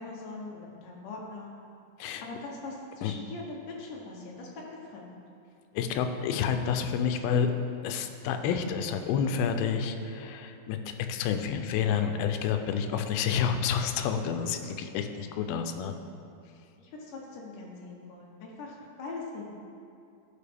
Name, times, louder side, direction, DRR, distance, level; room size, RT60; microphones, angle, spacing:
voice 1, 0.0-1.5 2.0-5.1 16.6-19.5, left 3 dB, 70° left, -1 dB, 2.2 m, -42 dB
voice 2, 5.7-7.5 7.8-10.8 11.1-15.9, left 7 dB, 90° left, 7 dB, 2.4 m, -29 dB
11.5 x 4.8 x 3.5 m, 2.5 s
omnidirectional pair, 4.2 m